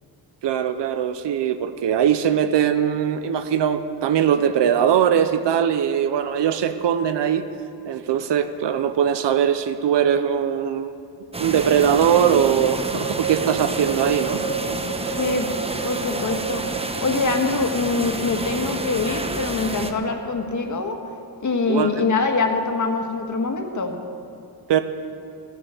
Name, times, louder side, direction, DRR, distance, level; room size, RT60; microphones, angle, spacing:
voice 1, 0.4-7.4 7.8-10.9 11.4-14.4 14.7-14.8 16.1-16.2 21.7-21.9 24.7-24.8, right 9 dB, 85° right, 9 dB, 0.8 m, -21 dB
sound 1, 11.3-19.9, right 2 dB, 15° right, 0.9 m, -30 dB
sound 2, 11.8-23.1, right 5 dB, 70° right, 2.4 m, -34 dB
voice 2, 15.2-15.5 15.8-21.0 21.4-24.0, left 3 dB, 45° left, 4 dB, 1.8 m, -24 dB
17.0 x 10.5 x 7.8 m, 2.6 s
wide cardioid pair, 130°, 41 cm